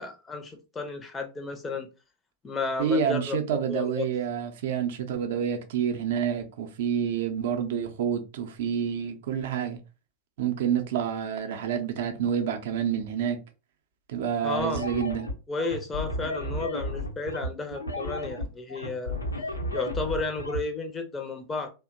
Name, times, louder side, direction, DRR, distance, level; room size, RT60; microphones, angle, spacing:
voice 1, 0.0-1.9 2.4-4.1 14.4-14.8 15.5-19.2 19.7-21.7, left 3 dB, 15° left, 0.5 m, -32 dB
voice 2, 2.8-9.8 10.4-13.4 14.1-15.3, right 8 dB, 55° right, 0.5 m, -28 dB
sound 1, 14.6-20.6, left 1 dB, 80° left, 0.7 m, -33 dB
2.7 x 2.1 x 2.5 m
figure-of-eight pair, 90°, 0 cm